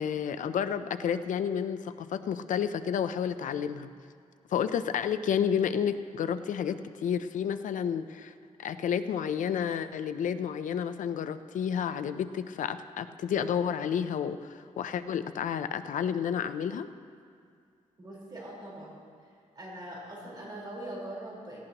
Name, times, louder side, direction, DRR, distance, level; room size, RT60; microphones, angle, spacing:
voice 1, 0.0-3.9 4.5-8.3 8.6-16.9, left 8 dB, 85° left, 11 dB, 0.6 m, -30 dB
voice 2, 18.0-19.0 19.5-21.6, right 1 dB, 35° right, -4 dB, 4.3 m, -42 dB
17.5 x 16.0 x 3.0 m, 2.2 s
wide cardioid pair, 130°, 13 cm